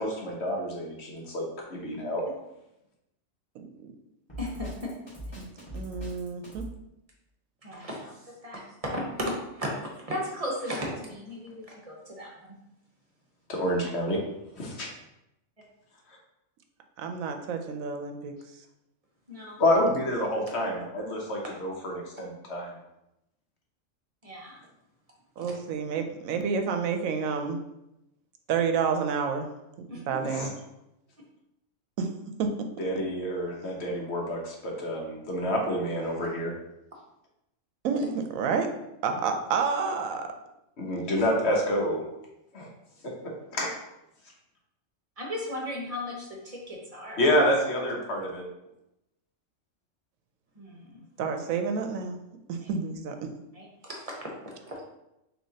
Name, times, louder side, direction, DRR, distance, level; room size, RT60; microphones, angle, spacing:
voice 1, 0.0-2.2 13.5-14.2 14.5-14.9 19.6-22.7 30.3-30.5 32.8-36.5 40.8-42.0 42.5-42.7 43.0-43.7 47.2-48.5, equal, 55° left, -1 dB, 1.1 m, -28 dB
voice 2, 3.6-3.9 5.4-5.5 5.7-6.7 17.0-18.3 25.4-27.6 28.5-29.5 30.1-30.5 32.0-32.1 32.4-32.7 37.8-38.7 39.0-40.3 51.2-52.2 52.5-53.3, right 5 dB, 90° right, 5 dB, 1.0 m, -29 dB
Drum kit, 4.3-6.7, right 1 dB, 20° left, 1.5 m, -39 dB
voice 3, 4.4-4.9 7.6-12.6 19.3-19.6 24.2-24.6 25.4-25.5 29.9-30.2 37.9-38.1 45.2-47.2 50.5-51.0 52.6-52.7 53.5-54.8, equal, 30° right, -2 dB, 0.9 m, -36 dB
6.3 x 2.9 x 2.8 m, 0.87 s
omnidirectional pair, 1.4 m